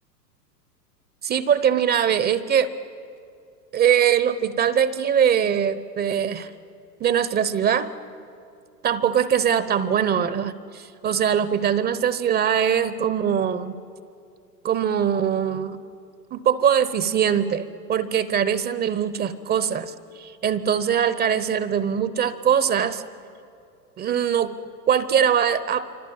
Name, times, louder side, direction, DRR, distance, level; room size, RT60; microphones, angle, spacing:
voice 1, 1.2-2.7 3.7-6.5 7.0-7.9 8.8-13.7 14.6-15.8 16.3-23.0 24.0-24.6 24.9-25.9, right 8 dB, 20° right, 14 dB, 0.8 m, -22 dB
27.5 x 25.0 x 8.7 m, 2.5 s
hypercardioid pair, 105°, 50 cm